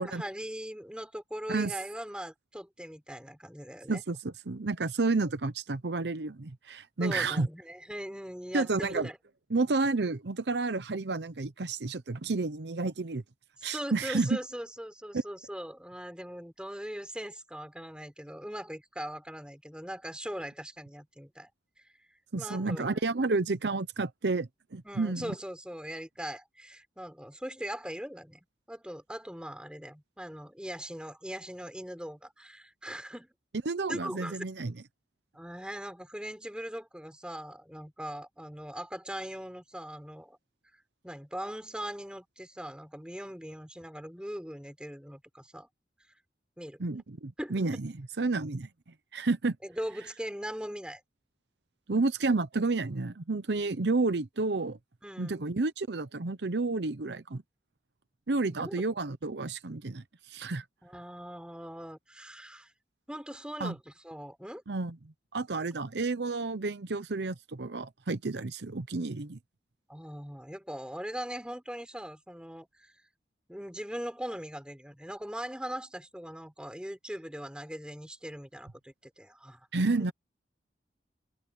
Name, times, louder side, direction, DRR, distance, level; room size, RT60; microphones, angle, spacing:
voice 1, 0.0-4.0 7.0-9.2 13.6-21.5 22.4-23.0 24.8-28.4 28.7-33.3 33.9-34.4 35.3-40.4 41.0-45.7 46.6-46.8 47.4-47.6 49.6-51.0 55.0-55.5 58.5-58.9 60.8-62.7 63.1-64.6 69.9-72.9 73.5-79.6 79.9-80.1, equal, 5° right, 4.5 m, -40 dB
voice 2, 3.9-7.5 8.5-9.1 9.5-13.2 13.6-14.4 22.3-25.3 33.7-34.7 46.8-48.7 49.1-49.6 51.9-54.8 55.2-57.4 58.3-60.0 60.3-60.6 63.6-63.7 64.7-65.0 65.3-69.4 79.7-80.1, right 3 dB, 80° right, 0.8 m, -30 dB
head